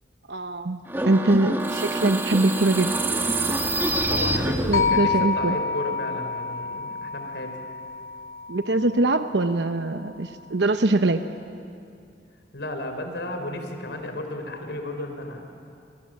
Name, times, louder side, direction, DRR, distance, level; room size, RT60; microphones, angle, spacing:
voice 1, 0.3-3.0 4.7-5.6 8.5-11.2, right 2 dB, 75° right, 8 dB, 1.0 m, -23 dB
sound 1, 0.9-5.1, right 1 dB, 10° right, 1.7 m, -26 dB
voice 2, 4.1-7.6 12.5-15.6, left 1 dB, 70° left, 5 dB, 4.1 m, -33 dB
sound 2, 4.7-8.9, left 5 dB, 55° left, 1.7 m, -28 dB
28.0 x 28.0 x 7.7 m, 2.4 s
head